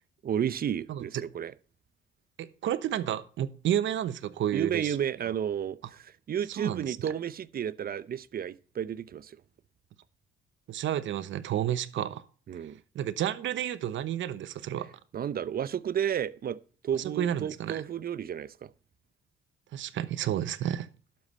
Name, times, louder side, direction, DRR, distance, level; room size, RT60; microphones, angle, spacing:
voice 1, 0.2-1.5 4.5-9.4 12.5-12.8 15.1-16.6 16.8-18.7, right 9 dB, 50° right, 0.7 m, -32 dB
voice 2, 2.4-5.0 6.6-7.1 10.7-12.2 12.9-14.9 16.9-17.8 19.7-20.9, right 11 dB, 75° right, 1.0 m, -31 dB
12.0 x 7.6 x 4.3 m
cardioid pair, 90°, 20 cm